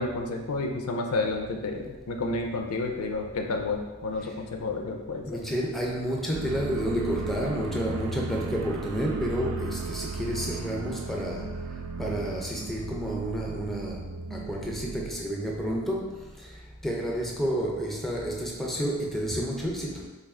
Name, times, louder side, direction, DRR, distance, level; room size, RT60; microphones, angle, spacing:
voice 1, 0.0-5.4, left 3 dB, 75° left, 4 dB, 0.4 m, -30 dB
voice 2, 5.3-11.6 12.0-20.1, equal, ahead, -2 dB, 0.4 m, -30 dB
sound 1, 6.3-15.1, right 4 dB, 70° right, 0.3 m, -36 dB
3.3 x 2.4 x 3.5 m, 1.2 s
head